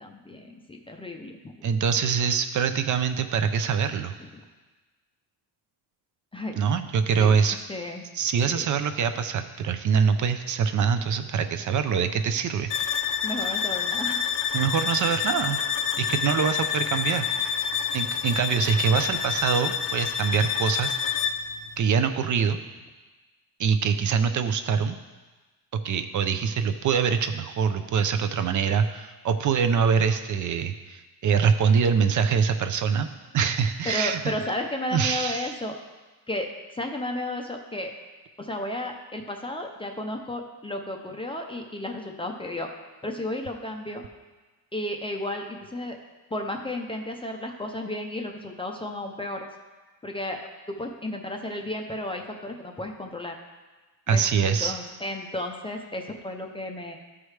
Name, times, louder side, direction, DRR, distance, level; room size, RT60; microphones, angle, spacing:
voice 1, 0.0-1.6 4.2-4.4 6.3-6.6 7.2-7.4 7.7-8.1 8.5-8.7 13.2-14.3 33.8-35.7 36.3-38.0 38.4-42.7 43.0-44.0 44.7-46.0 46.3-49.5 50.0-53.4 54.1-57.0, left 1 dB, 15° left, 2 dB, 0.4 m, -33 dB
voice 2, 1.6-4.1 6.6-7.6 8.1-12.7 14.5-15.6 16.0-17.3 17.9-20.9 21.8-22.6 23.6-25.0 25.8-33.1 33.3-34.3 34.9-35.5 54.1-54.8, right 6 dB, 50° right, 8 dB, 0.4 m, -24 dB
sound 1, 12.7-21.5, left 7 dB, 80° left, 0.7 m, -28 dB
14.0 x 4.8 x 3.2 m, 1.2 s
cardioid pair, 170°, 40 cm